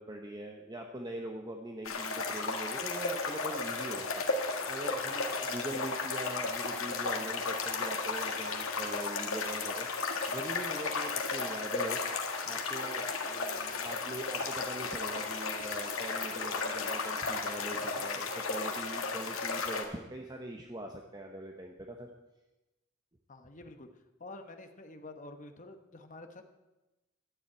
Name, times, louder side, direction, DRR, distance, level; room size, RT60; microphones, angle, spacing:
voice 1, 0.0-4.2 4.7-9.9 10.3-12.0 12.4-22.1, right 1 dB, 20° right, 2 dB, 0.8 m, -42 dB
sound 1, 1.8-19.8, left 4 dB, 85° left, 1.6 m, -34 dB
voice 2, 17.7-18.3 23.3-23.9 24.2-26.4, left 2 dB, 40° left, 6 dB, 1.0 m, -49 dB
11.5 x 7.1 x 8.8 m, 1.0 s
head